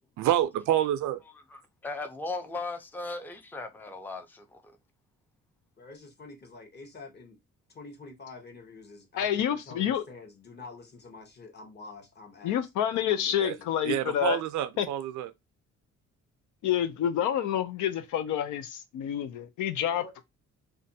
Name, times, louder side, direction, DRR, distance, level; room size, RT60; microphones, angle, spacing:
voice 1, 0.2-1.2 13.4-13.6 13.8-15.3, right 12 dB, 75° right, 0.5 m, -27 dB
voice 2, 1.5-4.8, left 3 dB, 5° left, 0.4 m, -37 dB
voice 3, 5.8-7.4 7.7-13.7 19.9-20.1, left 3 dB, 35° left, 0.9 m, -47 dB
voice 4, 9.2-10.0 12.4-14.4 14.8-14.9 16.6-20.0, left 10 dB, 80° left, 0.5 m, -28 dB
2.5 x 2.2 x 2.6 m
cardioid pair, 90°, 30 cm